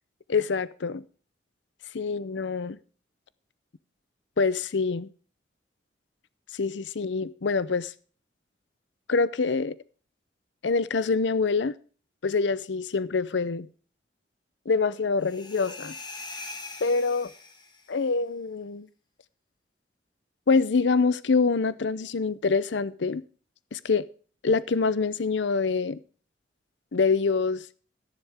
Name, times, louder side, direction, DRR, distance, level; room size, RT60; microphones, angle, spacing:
voice 1, 0.3-1.0 1.9-2.8 4.4-5.1 6.5-7.9 9.1-9.7 10.6-11.8 12.2-13.7 14.7-15.9 16.8-17.3 17.9-18.9 20.5-23.2 23.7-24.0 24.4-26.0 26.9-27.6, left 4 dB, 80° left, 0.6 m, -25 dB
sound 1, 15.2-17.9, left 3 dB, 25° left, 1.5 m, -42 dB
13.0 x 11.0 x 3.5 m
head